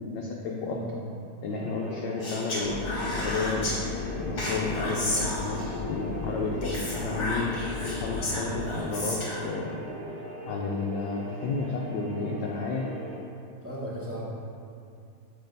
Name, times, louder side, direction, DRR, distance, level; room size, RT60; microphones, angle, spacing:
voice 1, 0.1-0.8 1.4-2.8 3.1-3.7 4.2-7.5 8.0-9.2 9.4-9.8 10.4-12.9, left 4 dB, 70° left, -2 dB, 1.1 m, -32 dB
sound 1, 1.5-13.2, right 1 dB, 65° right, 2.0 m, -40 dB
Speech, 2.2-3.8 4.4-5.8 6.6-9.5, left 1 dB, 40° left, 1.4 m, -33 dB
sound 2, 2.6-8.6, left 4 dB, 90° left, 1.5 m, -35 dB
voice 2, 13.6-14.2, equal, 10° right, -8 dB, 0.6 m, -36 dB
6.8 x 5.1 x 4.0 m, 2.4 s
omnidirectional pair, 2.3 m